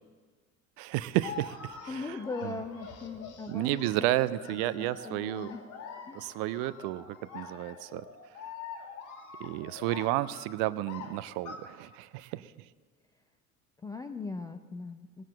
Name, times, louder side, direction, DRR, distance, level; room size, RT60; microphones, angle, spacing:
voice 1, 0.8-2.2 2.4-2.5 3.5-5.5 6.1-8.0 9.4-12.7, right 16 dB, 45° right, 17 dB, 0.5 m, -32 dB
sound 1, 1.2-11.6, left 6 dB, 45° left, 2.0 m, -45 dB
voice 2, 1.9-4.1 4.5-5.6 6.0-6.3 13.8-15.2, left 3 dB, 10° left, 7 dB, 0.3 m, -40 dB
19.0 x 7.3 x 7.6 m, 1.5 s
figure-of-eight pair, 65°, 43 cm